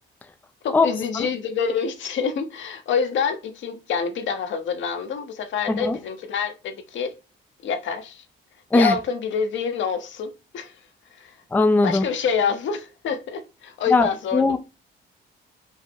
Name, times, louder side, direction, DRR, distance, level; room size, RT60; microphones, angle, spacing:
voice 1, 0.6-7.1 7.6-8.2 8.7-10.7 11.1-11.3 11.8-14.6, left 6 dB, 70° left, 0.8 m, -27 dB
voice 2, 5.7-6.0 8.7-9.0 11.5-12.1 13.9-14.6, left 3 dB, 10° left, 0.4 m, -19 dB
5.5 x 2.0 x 4.5 m
cardioid pair, 90°, 20 cm